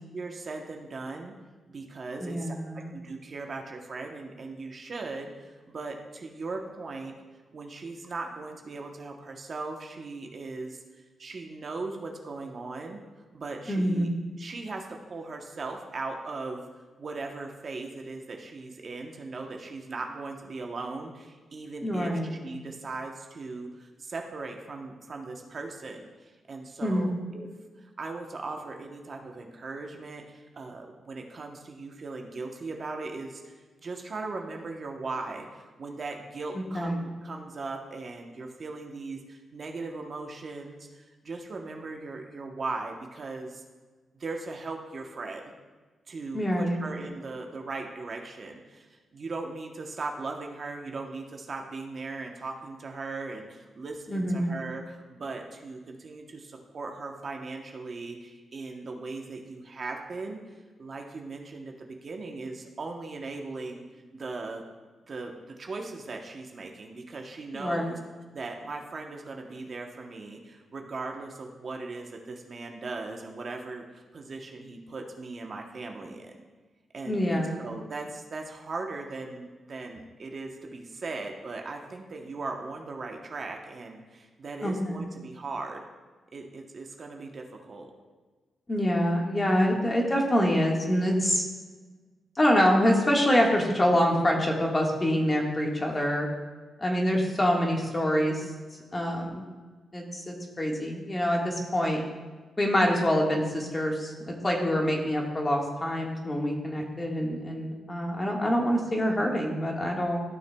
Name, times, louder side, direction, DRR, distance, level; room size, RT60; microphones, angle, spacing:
voice 1, 0.1-1.3 1.7-7.1 7.5-10.8 11.2-13.0 13.3-14.1 14.4-16.6 17.0-27.5 27.8-33.5 33.8-43.6 44.1-45.5 46.1-60.4 60.8-63.8 64.1-64.6 65.1-68.0 68.3-76.3 76.9-85.9 86.3-87.9 89.6-89.8 95.9-96.0, right 3 dB, 45° right, 2 dB, 0.9 m, -38 dB
voice 2, 2.2-2.9 13.7-14.1 21.8-22.3 26.8-27.1 36.7-36.9 46.3-46.8 54.1-54.5 67.5-67.9 77.1-77.6 84.6-85.0 88.7-91.4 92.3-96.3 96.8-98.4 98.9-99.4 99.9-102.0 102.6-110.2, equal, 25° left, 0 dB, 1.6 m, -26 dB
14.5 x 6.5 x 2.3 m, 1.4 s
cardioid pair, 105°, 0 cm